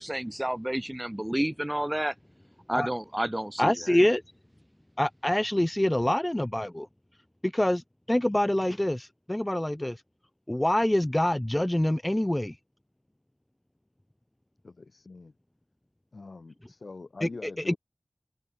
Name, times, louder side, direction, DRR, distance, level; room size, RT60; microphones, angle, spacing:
voice 1, 0.0-2.1 2.7-3.9, right 1 dB, 15° right, 7.9 m, -30 dB
voice 2, 3.6-4.2 5.0-6.9 7.4-10.0 10.5-12.5 17.2-17.7, left 1 dB, 20° left, 1.5 m, -26 dB
voice 3, 14.6-15.3 16.1-17.8, left 3 dB, 80° left, 5.5 m, -44 dB
wide cardioid pair, 45°, 0 cm